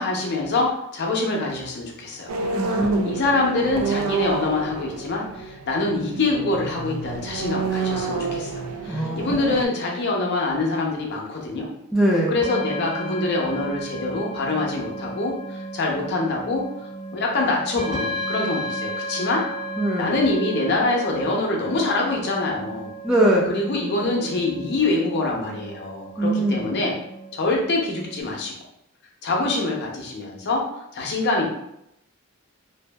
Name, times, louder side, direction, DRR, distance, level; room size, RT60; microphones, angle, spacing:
voice 1, 0.0-2.3 3.0-11.7 12.3-16.6 17.1-19.4 20.0-22.9 23.5-26.9 27.3-28.5 29.2-30.7 30.9-31.5, left 2 dB, 50° left, 0 dB, 0.5 m, -25 dB
sound 1, 2.3-9.7, right 4 dB, 80° right, 0.4 m, -29 dB
voice 2, 2.6-3.2 8.9-9.4 11.9-12.3 19.8-20.1 23.0-23.5 26.2-26.7, right 1 dB, 5° right, -4 dB, 0.3 m, -21 dB
sound 2, 12.4-28.2, right 1 dB, 55° right, 1.1 m, -34 dB
2.6 x 2.3 x 2.2 m, 0.80 s
head